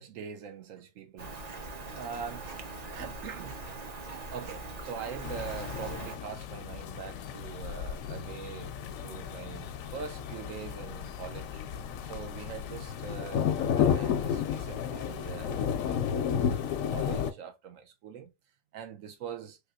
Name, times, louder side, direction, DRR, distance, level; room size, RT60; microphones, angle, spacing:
voice 1, 0.0-1.4 1.9-2.6 2.9-3.7 4.3-11.6 12.0-18.3 18.7-19.6, right 7 dB, 75° right, 1.1 m, -43 dB
Rain, 1.2-6.2, right 2 dB, 40° right, 0.7 m, -41 dB
sound 1, 5.2-17.3, left 8 dB, 85° left, 1.0 m, -32 dB
3.5 x 3.4 x 2.3 m
omnidirectional pair, 1.4 m